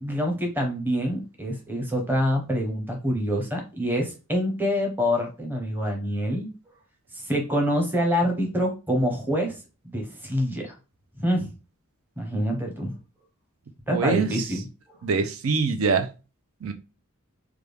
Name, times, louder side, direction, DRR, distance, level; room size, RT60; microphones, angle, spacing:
voice 1, 0.0-6.5 7.1-9.6 9.8-10.7 11.2-11.5 12.2-12.9 13.9-14.7, equal, 10° right, 0.8 m, -26 dB
voice 2, 13.9-14.5 15.0-16.1 16.6-16.7, right 4 dB, 80° right, 0.5 m, -24 dB
3.4 x 2.3 x 3.3 m
head